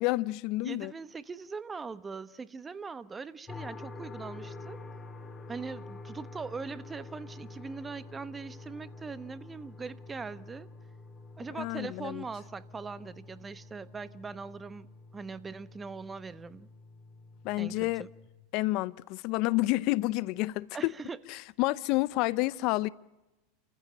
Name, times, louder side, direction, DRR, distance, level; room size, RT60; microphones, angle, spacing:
voice 1, 0.0-0.9 11.6-12.2 17.4-18.1 18.5-20.9 21.3-22.9, left 19 dB, 55° left, 0.7 m, -29 dB
voice 2, 0.6-4.8 5.5-10.7 11.4-14.9 15.1-16.7 17.6-18.1 20.7-21.2, right 4 dB, 20° right, 1.0 m, -41 dB
sound 1, 3.5-18.3, left 3 dB, 20° left, 3.1 m, -47 dB
29.0 x 15.0 x 9.0 m
hypercardioid pair, 110°, 0 cm